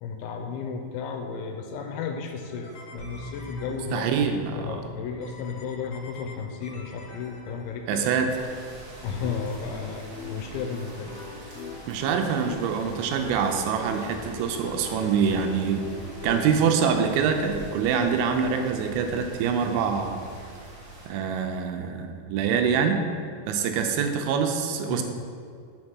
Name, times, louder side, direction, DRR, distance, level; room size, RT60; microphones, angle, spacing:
voice 1, 0.0-4.0 4.5-8.1 9.0-11.1 24.8-25.0, left 5 dB, 90° left, 4 dB, 3.0 m, -34 dB
sound 1, 2.4-4.3 5.2-8.0 9.0-16.5, left 4 dB, 60° left, 1.9 m, -43 dB
Bass guitar, 3.0-9.2, left 2 dB, 50° right, 2.3 m, -44 dB
voice 2, 3.7-4.8 7.9-8.4 11.9-15.9 16.2-20.2 21.1-23.0 23.5-25.0, right 6 dB, 85° right, 5 dB, 3.0 m, -25 dB
sound 2, 8.3-21.1, right 2 dB, 65° right, 1.2 m, -44 dB
6.5 x 5.3 x 5.9 m, 2.3 s
omnidirectional pair, 5.4 m